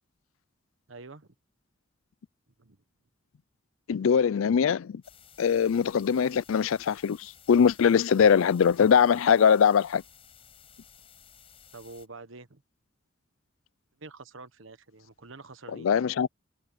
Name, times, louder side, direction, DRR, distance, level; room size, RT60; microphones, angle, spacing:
voice 1, 0.9-1.3 2.6-2.8 11.7-12.6 14.0-15.9, right 3 dB, 75° right, 1.3 m, -46 dB
voice 2, 3.9-5.0 5.4-10.0 15.7-16.3, left 7 dB, 85° left, 0.4 m, -22 dB
sound 1, 5.0-12.1, left 8 dB, 30° left, 6.1 m, -55 dB
head